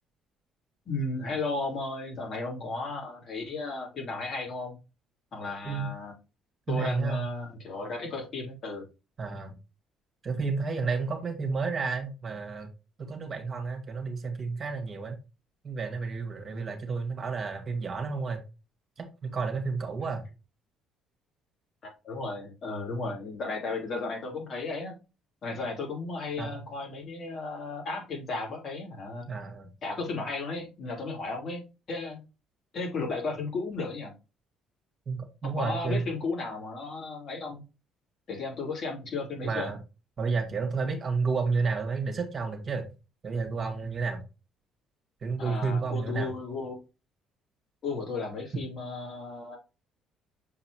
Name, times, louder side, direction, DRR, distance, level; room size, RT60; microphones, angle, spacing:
voice 1, 0.9-4.8 5.3-6.1 6.7-8.9 22.0-25.0 25.4-29.3 29.8-32.2 32.7-34.1 35.4-37.6 38.3-39.7 45.4-46.8 47.8-49.6, left 3 dB, 50° left, -1 dB, 3.2 m, -34 dB
voice 2, 6.7-7.3 9.2-9.5 10.2-12.7 13.0-15.2 15.6-18.4 19.2-20.3 26.4-26.6 29.3-29.7 35.1-36.0 39.4-39.8 40.2-42.8 43.2-44.2 45.2-46.3, right 4 dB, 40° right, 5 dB, 1.8 m, -31 dB
6.8 x 4.8 x 3.0 m, 0.29 s
hypercardioid pair, 50°, 0 cm